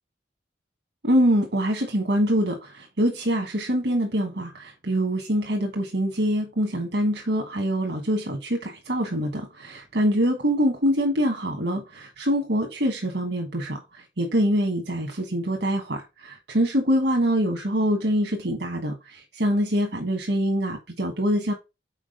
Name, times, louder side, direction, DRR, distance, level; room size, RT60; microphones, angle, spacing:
voice 1, 1.0-21.5, equal, 75° right, 1.3 m, -24 dB
5.9 x 4.5 x 5.3 m
head